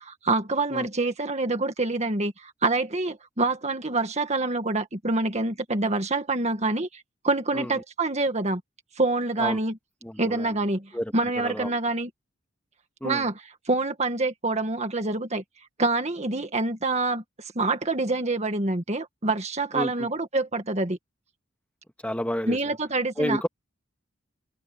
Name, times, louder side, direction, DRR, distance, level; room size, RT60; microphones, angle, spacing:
voice 1, 0.0-8.6 9.0-9.8 10.2-12.1 13.0-13.4 13.7-15.4 15.8-17.2 17.5-21.0 22.5-23.5, right 2 dB, 35° right, 1.8 m, -26 dB
voice 2, 10.0-10.5 10.9-11.8 13.0-13.3 19.7-20.1 22.0-22.6 23.2-23.5, equal, 5° left, 2.4 m, -30 dB
head